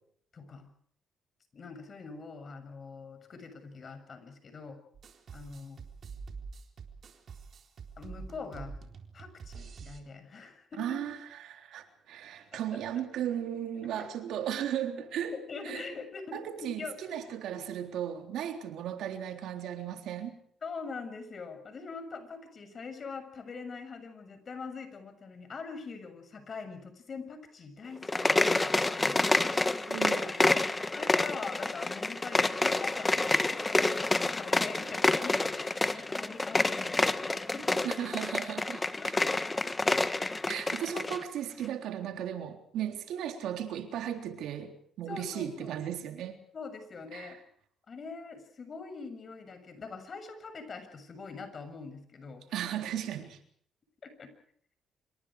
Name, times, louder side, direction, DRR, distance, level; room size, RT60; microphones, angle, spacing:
voice 1, 0.3-0.7 1.5-4.8 5.3-5.8 8.0-8.7 9.1-11.1 12.5-12.6 14.0-14.1 15.3-17.2 20.6-29.6 30.6-37.8 39.0-39.3 45.1-45.7 46.5-47.4 47.9-52.4 54.0-54.3, left 4 dB, 45° left, 6.9 m, -43 dB
sound 1, 4.9-10.0, right 5 dB, 55° right, 4.0 m, -46 dB
voice 2, 10.8-15.4 15.6-15.9 16.3-20.4 29.9-30.6 35.9-36.0 37.8-38.8 40.5-46.4 47.1-47.4 52.5-53.4, right 10 dB, 80° right, 3.6 m, -36 dB
sound 2, 28.0-41.2, left 2 dB, 20° left, 1.5 m, -28 dB
27.0 x 24.5 x 4.9 m
cardioid pair, 90°, 0 cm